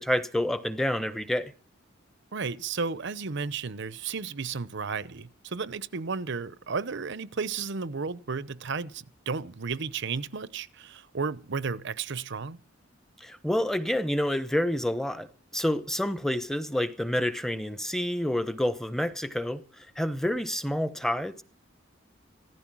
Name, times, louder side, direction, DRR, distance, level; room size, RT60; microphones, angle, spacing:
voice 1, 0.0-1.5 13.2-15.3 15.5-19.6 20.0-21.4, left 1 dB, ahead, 1.0 m, -28 dB
voice 2, 2.3-12.6, right 5 dB, 60° right, 0.8 m, -33 dB
15.5 x 14.0 x 6.2 m
head